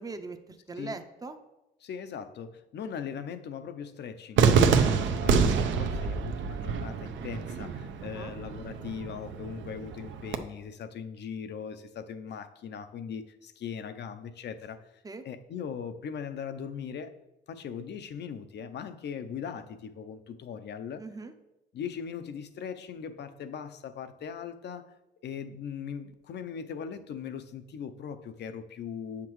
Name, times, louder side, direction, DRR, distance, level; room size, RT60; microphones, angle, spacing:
voice 1, 0.0-1.4 8.0-8.3 15.0-15.2 21.0-21.3, right 3 dB, 20° right, 9 dB, 0.6 m, -41 dB
voice 2, 1.8-17.1 17.5-21.0 21.7-24.9 25.2-29.3, left 7 dB, 60° left, 10 dB, 0.6 m, -39 dB
Cheering / Fireworks, 4.4-10.4, right 6 dB, 70° right, 0.6 m, -27 dB
7.6 x 5.9 x 3.1 m, 0.96 s
cardioid pair, 90°, 20 cm